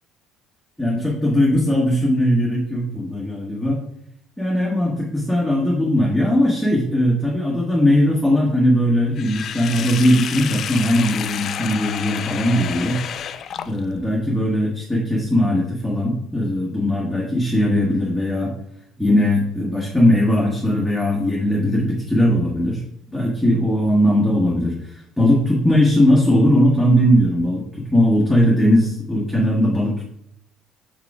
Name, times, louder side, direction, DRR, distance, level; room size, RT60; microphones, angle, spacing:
voice 1, 0.8-3.8 4.4-13.0 13.6-18.5 19.0-22.8 23.1-27.7 27.9-30.0, equal, ahead, -4 dB, 1.4 m, -19 dB
Sink (filling or washing), 9.2-14.1, left 8 dB, 50° left, 0.3 m, -30 dB
4.8 x 4.8 x 4.7 m, 0.73 s
cardioid pair, 100°, 0 cm